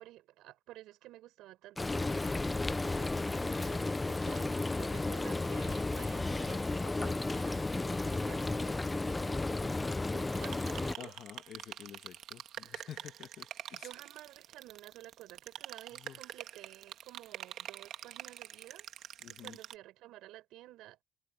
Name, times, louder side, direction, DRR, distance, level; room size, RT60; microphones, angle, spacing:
voice 1, 0.0-4.5 4.8-11.1 13.7-21.0, right 15 dB, 80° right, 7.0 m, -53 dB
Frying (food), 1.8-10.9, left 2 dB, 15° left, 0.4 m, -33 dB
sound 1, 10.3-19.7, right 11 dB, 65° right, 1.7 m, -46 dB
voice 2, 11.0-13.9 16.0-16.2 19.2-19.6, left 10 dB, 55° left, 1.6 m, -50 dB
cardioid pair, 130°, 0 cm